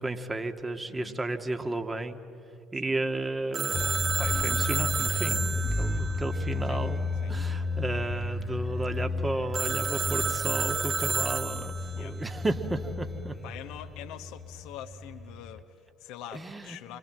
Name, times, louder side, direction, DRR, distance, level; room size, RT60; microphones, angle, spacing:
voice 1, 0.0-2.2 2.7-3.9 4.2-13.4 16.3-16.8, right 2 dB, 20° right, 6 dB, 2.0 m, -33 dB
Telephone, 3.5-7.2 9.5-12.1, right 5 dB, 40° right, 0.8 m, -31 dB
sound 1, 3.7-15.6, left 3 dB, 20° left, 1.9 m, -33 dB
voice 2, 13.4-17.0, left 11 dB, 65° left, 7 dB, 1.0 m, -44 dB
28.5 x 24.5 x 7.7 m, 2.6 s
figure-of-eight pair, 55°, 0 cm